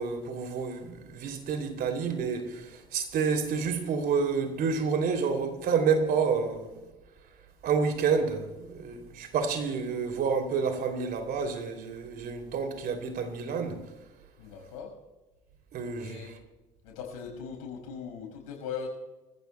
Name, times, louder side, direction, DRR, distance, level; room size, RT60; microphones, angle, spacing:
voice 1, 0.0-2.6 2.9-6.7 7.6-13.8 15.7-16.2, right 5 dB, 55° right, 3.0 m, -29 dB
voice 2, 14.4-14.9 16.0-16.3 16.8-18.9, left 6 dB, 80° left, 5.5 m, -39 dB
25.0 x 16.0 x 2.3 m
hypercardioid pair, 60°, 18 cm